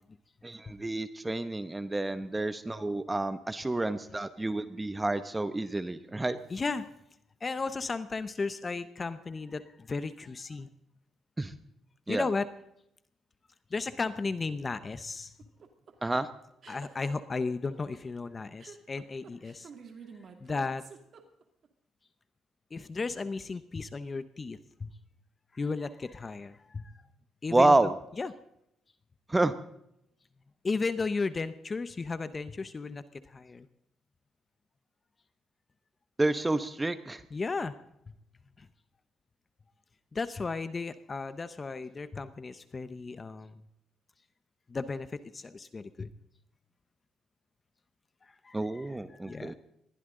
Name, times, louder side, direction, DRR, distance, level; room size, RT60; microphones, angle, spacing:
voice 1, 0.4-6.4 11.4-11.5 12.1-12.3 16.0-16.3 27.5-27.9 29.3-29.5 36.2-37.2 48.5-49.5, right 2 dB, 15° right, 12 dB, 0.9 m, -29 dB
voice 2, 6.5-6.9 7.4-10.7 12.1-12.5 13.7-15.3 16.7-19.7 20.4-20.8 22.7-24.9 25.5-27.0 27.4-27.9 28.2-28.3 30.6-33.7 37.3-37.7 38.6-38.7 40.1-43.6 44.7-46.1 48.2-49.5, left 4 dB, 30° left, 13 dB, 0.9 m, -35 dB
sound 1, 15.4-21.7, right 6 dB, 55° right, 2.5 m, -50 dB
21.0 x 15.0 x 3.9 m, 0.78 s
cardioid pair, 90°, 0 cm